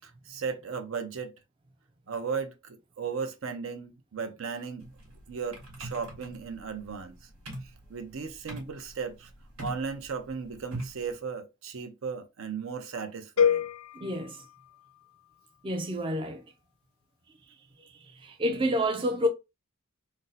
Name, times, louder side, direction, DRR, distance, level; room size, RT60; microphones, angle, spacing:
voice 1, 0.0-1.4 2.1-4.9 5.3-7.2 7.9-9.3 9.6-13.6, right 5 dB, 70° right, 0.6 m, -36 dB
sound 1, 4.8-11.1, right 1 dB, 85° right, 1.3 m, -42 dB
sound 2, 13.4-15.4, left 7 dB, 75° left, 0.3 m, -28 dB
voice 2, 14.0-14.4 15.6-16.4 18.2-19.3, equal, 25° right, 0.4 m, -28 dB
2.6 x 2.0 x 3.8 m
head